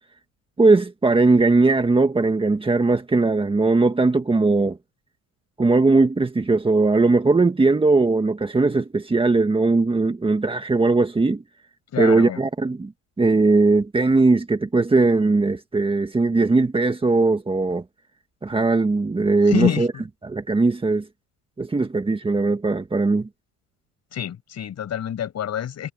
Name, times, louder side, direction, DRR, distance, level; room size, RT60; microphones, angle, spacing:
voice 1, 0.6-4.8 5.6-11.4 12.0-12.9 13.2-17.8 18.4-19.9 20.2-21.1 21.6-23.3, right 3 dB, 15° right, 1.8 m, -19 dB
voice 2, 11.9-12.4 19.5-19.9 24.1-25.9, left 9 dB, 45° left, 7.5 m, -26 dB
cardioid pair, 115°, 36 cm